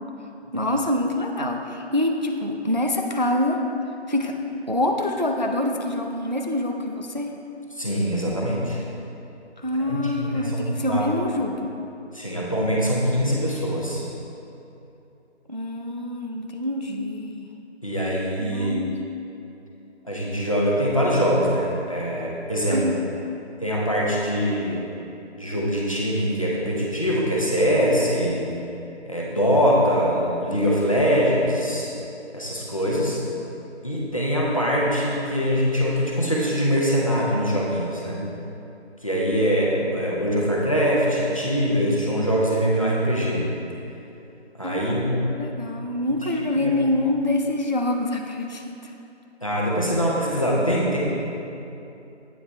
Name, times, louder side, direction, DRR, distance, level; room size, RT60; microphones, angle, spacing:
voice 1, 0.5-3.6 4.1-4.4 4.7-7.3 9.6-11.7 15.5-17.5 18.4-19.0 22.7-23.0 44.6-48.9, left 1 dB, 45° right, 2 dB, 0.4 m, -26 dB
voice 2, 7.7-8.8 9.9-11.1 12.1-14.0 17.8-18.8 20.0-22.9 23.6-24.8 25.4-28.5 29.1-31.9 32.3-33.2 33.8-38.2 39.0-43.5 44.6-45.2 46.2-46.3 46.6-46.7 49.4-51.0, equal, 30° left, -5 dB, 0.9 m, -23 dB
8.5 x 5.5 x 4.3 m, 2.8 s
figure-of-eight pair, 175°, 34 cm